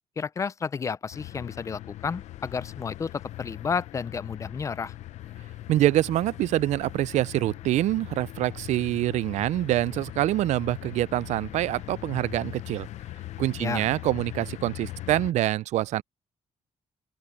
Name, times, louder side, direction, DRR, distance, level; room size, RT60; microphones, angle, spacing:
voice 1, 0.2-3.1 3.4-4.9 13.6-13.8, left 5 dB, 25° left, 0.4 m, -31 dB
sound 1, 1.1-15.3, left 15 dB, 75° left, 0.7 m, -40 dB
voice 2, 5.7-12.9 13.4-16.0, right 14 dB, 80° right, 0.4 m, -25 dB
open air
cardioid pair, 165°, 12 cm